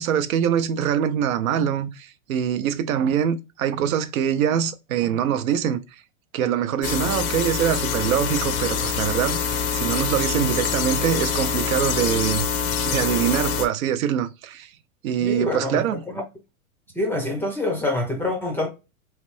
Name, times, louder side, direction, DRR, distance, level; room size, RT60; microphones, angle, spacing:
voice 1, 0.0-5.8 6.3-12.5 12.8-14.7 15.0-16.0, right 9 dB, 70° right, 0.6 m, -24 dB
sound 1, 6.8-13.7, left 6 dB, 80° left, 0.8 m, -25 dB
voice 2, 15.2-15.8 16.1-16.2 16.9-18.7, left 2 dB, 5° left, 0.5 m, -25 dB
3.2 x 3.0 x 3.1 m
hypercardioid pair, 125°, 43 cm